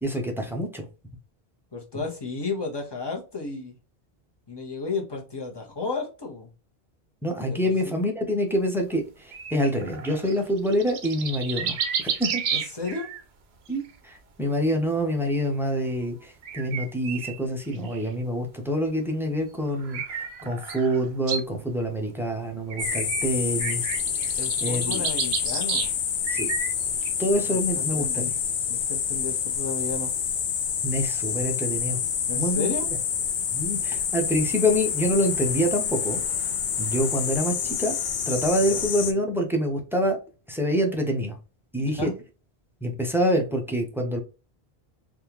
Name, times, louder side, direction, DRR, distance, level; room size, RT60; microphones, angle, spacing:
voice 1, 0.0-0.9 7.2-11.7 12.2-12.4 13.7-23.9 24.6-25.0 26.3-26.5 27.2-28.2 30.8-32.0 32.4-32.7 33.5-36.2 36.8-37.9 38.3-40.2 40.5-41.3 41.7-42.1 42.8-44.2, equal, 5° right, 0.6 m, -26 dB
voice 2, 1.7-3.8 4.5-6.5 7.5-7.9 12.5-13.1 24.4-25.9 27.5-28.3 28.7-30.1 32.3-32.9 38.7-38.9 41.8-42.1, left 4 dB, 25° left, 0.9 m, -33 dB
sound 1, 9.3-13.2 13.7-13.9 16.4-18.1 19.7-21.4 22.7-23.3 23.6-25.9 26.2-27.1, right 7 dB, 75° right, 0.9 m, -32 dB
sound 2, 22.8-39.1, left 7 dB, 55° left, 0.6 m, -28 dB
3.5 x 2.4 x 2.9 m
omnidirectional pair, 1.1 m